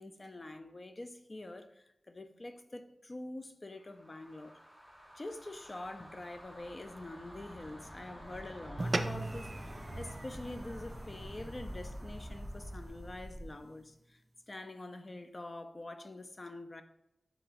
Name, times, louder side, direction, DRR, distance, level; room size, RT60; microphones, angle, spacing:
voice 1, 0.0-4.6 5.2-14.2 14.5-16.8, left 2 dB, 40° left, 0.4 m, -46 dB
sound 1, 3.8-13.6, equal, 20° left, 1.0 m, -48 dB
sound 2, 8.8-13.4, right 2 dB, 50° right, 0.3 m, -40 dB
4.3 x 3.8 x 2.5 m
cardioid pair, 50°, 0 cm